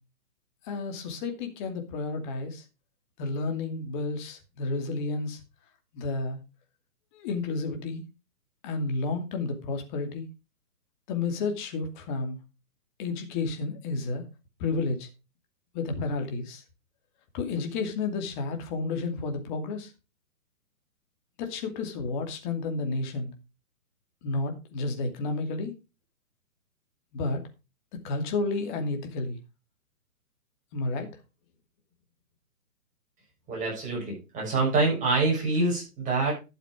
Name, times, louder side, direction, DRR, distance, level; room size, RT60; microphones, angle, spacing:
voice 1, 0.6-2.6 3.2-5.4 5.9-6.4 7.1-8.0 8.6-10.3 11.1-12.4 13.0-14.2 14.6-15.1 15.7-16.6 17.3-19.9 21.4-23.3 24.2-25.7 27.1-27.4 27.9-29.4 30.7-31.1, left 3 dB, 30° left, 4 dB, 2.6 m, -31 dB
voice 2, 33.5-36.3, right 3 dB, 15° right, -2 dB, 6.5 m, -26 dB
12.0 x 7.4 x 4.8 m, 0.28 s
hypercardioid pair, 145°, 45 cm